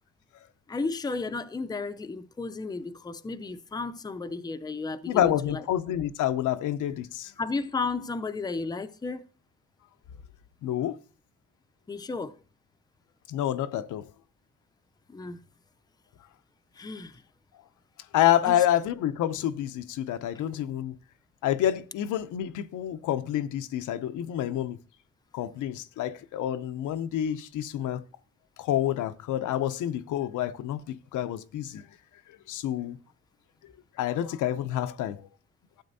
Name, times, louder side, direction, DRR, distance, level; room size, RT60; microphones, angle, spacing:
voice 1, 0.7-5.6 7.4-9.2 11.9-12.4 15.1-15.4 16.8-17.2 18.5-18.6, left 3 dB, 15° left, 0.5 m, -33 dB
voice 2, 5.1-7.3 10.6-11.0 13.3-14.1 18.1-20.9 21.4-24.8 25.3-28.0 28.6-31.8 32.5-33.0 34.0-35.2, left 11 dB, 80° left, 0.7 m, -28 dB
12.5 x 7.7 x 2.7 m
cardioid pair, 90°, 30 cm